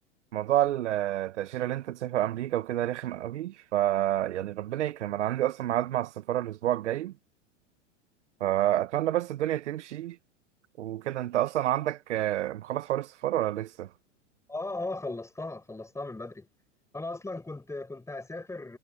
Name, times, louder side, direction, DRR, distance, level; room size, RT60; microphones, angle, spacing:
voice 1, 0.3-7.1 8.4-10.2 10.8-13.9, right 13 dB, 70° right, 1.3 m, -29 dB
voice 2, 14.5-16.5 16.9-18.8, left 2 dB, 10° left, 7.5 m, -37 dB
hypercardioid pair, 95°, 37 cm